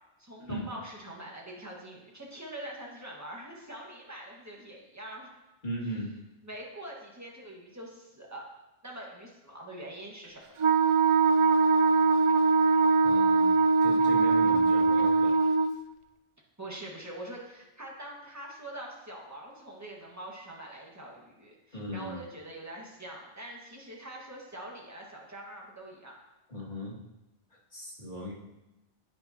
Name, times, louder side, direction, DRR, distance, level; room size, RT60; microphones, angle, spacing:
voice 1, 0.2-5.3 6.4-8.5 8.8-10.4 16.6-26.1, right 1 dB, 15° right, -3 dB, 1.8 m, -44 dB
voice 2, 5.6-6.1 13.0-13.5 13.8-15.4 21.7-22.2 26.5-27.0 27.5-28.3, right 1 dB, 50° left, -6 dB, 2.5 m, -37 dB
Wind instrument woodwind instrument, 10.6-15.8, right 4 dB, 55° right, 0.3 m, -22 dB
10.5 x 9.0 x 2.9 m, 0.98 s
omnidirectional pair, 1.0 m